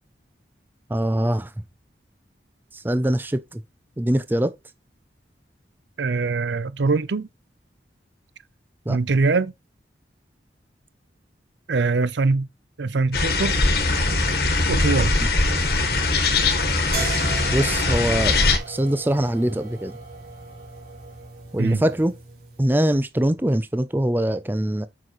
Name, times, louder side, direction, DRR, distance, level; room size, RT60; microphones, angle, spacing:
voice 1, 0.9-1.5 2.7-3.6 4.0-4.5 8.9-9.0 17.5-18.4 18.7-20.0 21.5-22.1 22.6-24.9, right 1 dB, 10° right, 0.4 m, -23 dB
voice 2, 6.0-7.3 8.9-9.5 11.7-12.5 12.8-13.5 14.7-15.1 21.6-21.8, right 3 dB, 85° right, 0.6 m, -22 dB
sound 1, 13.1-18.6, left 3 dB, 60° left, 1.4 m, -21 dB
sound 2, 16.9-22.7, right 3 dB, 55° right, 3.2 m, -37 dB
7.4 x 5.9 x 3.1 m
head